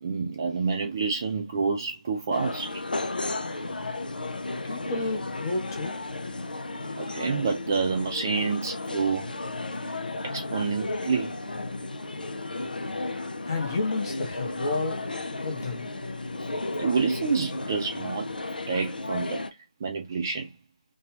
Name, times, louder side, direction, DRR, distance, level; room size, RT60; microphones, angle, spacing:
voice 1, 0.0-2.8 7.0-9.3 10.3-11.3 16.8-18.3 18.7-19.4 19.8-20.5, right 5 dB, 20° right, 0.3 m, -28 dB
sound 1, 2.3-19.5, left 2 dB, 85° left, 0.4 m, -34 dB
voice 2, 4.6-6.0 13.4-15.1 15.4-15.9, left 3 dB, 25° left, 0.8 m, -30 dB
2.6 x 2.2 x 2.8 m
figure-of-eight pair, 165°, 5 cm